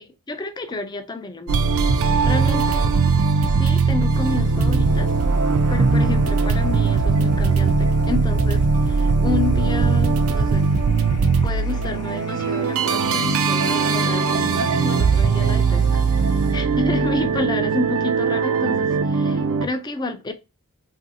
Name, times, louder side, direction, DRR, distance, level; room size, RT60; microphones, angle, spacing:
voice 1, 0.3-3.1 3.4-5.1 5.7-10.7 11.4-16.0 16.5-20.3, left 3 dB, 20° left, 0.3 m, -30 dB
sound 1, 1.5-19.7, right 4 dB, 65° right, 0.3 m, -19 dB
Fire, 4.1-16.5, left 2 dB, 80° left, 0.7 m, -42 dB
3.0 x 2.5 x 2.6 m
head